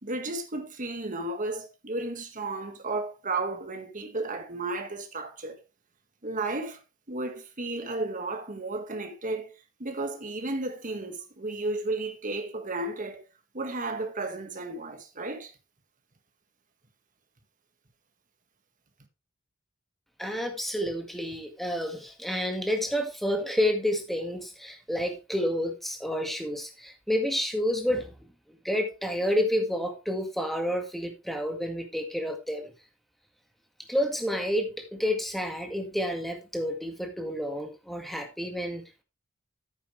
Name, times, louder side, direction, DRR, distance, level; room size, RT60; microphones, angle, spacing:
voice 1, 0.0-5.6 6.2-6.8 7.1-9.5 9.8-13.2 13.5-15.5, right 2 dB, 40° right, 1.8 m, -33 dB
voice 2, 20.2-28.1 28.6-32.7 33.9-38.8, equal, ahead, 1.9 m, -29 dB
10.0 x 9.2 x 3.3 m
head